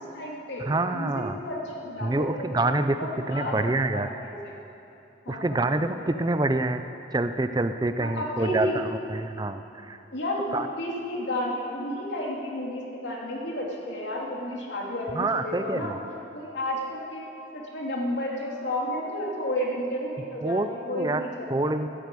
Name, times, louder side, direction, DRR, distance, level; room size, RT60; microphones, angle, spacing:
voice 1, 0.0-4.5 5.2-6.3 8.0-8.8 10.1-15.9 16.3-17.2 17.5-21.7, left 1 dB, 80° left, -2 dB, 2.8 m, -32 dB
voice 2, 0.7-1.4 2.0-3.0 3.3-4.1 5.3-6.8 7.1-10.0 10.5-10.7 15.1-16.0 20.4-21.2 21.5-21.9, right 2 dB, 20° right, 10 dB, 0.4 m, -26 dB
13.5 x 9.4 x 9.2 m, 2.8 s
head